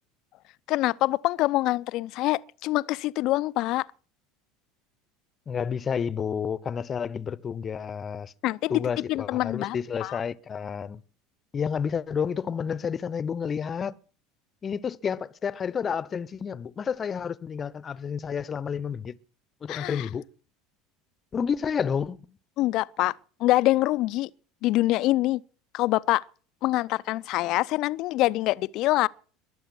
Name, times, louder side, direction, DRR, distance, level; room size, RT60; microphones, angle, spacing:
voice 1, 0.7-3.8 8.4-8.7 9.1-10.2 19.7-20.1 22.6-23.1 23.4-24.3 24.6-25.4 25.7-26.2 26.6-29.1, left 17 dB, 55° left, 0.6 m, -25 dB
voice 2, 5.5-8.3 8.7-11.0 11.5-14.0 14.6-19.2 19.6-20.2 21.3-22.4, left 7 dB, 35° left, 0.9 m, -30 dB
22.0 x 7.8 x 6.2 m
hypercardioid pair, 75°, 0 cm